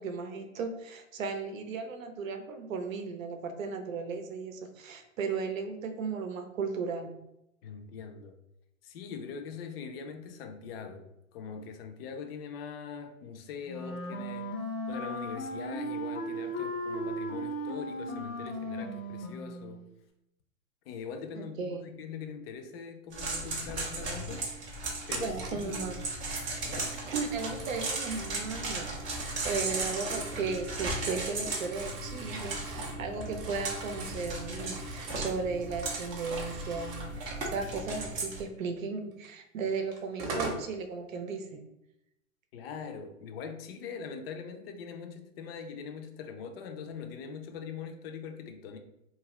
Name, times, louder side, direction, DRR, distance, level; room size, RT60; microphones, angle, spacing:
voice 1, 0.0-7.2 21.6-21.8 25.2-25.9 26.9-41.6, right 4 dB, 75° right, 0.6 m, -36 dB
voice 2, 7.6-8.3 8.8-14.5 14.9-19.8 20.9-24.5 25.1-26.0 26.6-26.9 42.5-48.8, left 6 dB, 45° left, 0.5 m, -42 dB
Wind instrument woodwind instrument, 13.7-19.9, equal, 80° left, 0.8 m, -36 dB
sound 1, 23.1-38.4, right 2 dB, 15° right, 0.3 m, -36 dB
Telephone, 25.1-25.7 27.2-28.3 28.9-30.4 30.8-35.3 35.6-37.1 39.2-39.3 39.9-40.7, right 2 dB, 35° right, 0.7 m, -42 dB
2.5 x 2.4 x 3.0 m
hypercardioid pair, 120°, 40 cm